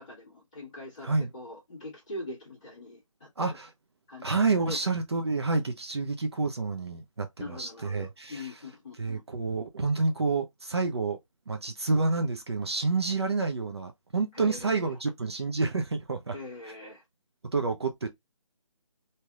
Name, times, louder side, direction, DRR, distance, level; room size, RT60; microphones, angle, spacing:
voice 1, 0.0-3.6 4.1-4.8 7.4-9.2 14.3-14.9 16.3-17.0, left 2 dB, 10° left, 1.1 m, -42 dB
voice 2, 3.4-3.7 4.2-8.5 9.0-11.2 11.5-16.3 17.5-18.1, right 3 dB, 50° right, 0.6 m, -29 dB
3.2 x 2.8 x 2.2 m
hypercardioid pair, 180°, 17 cm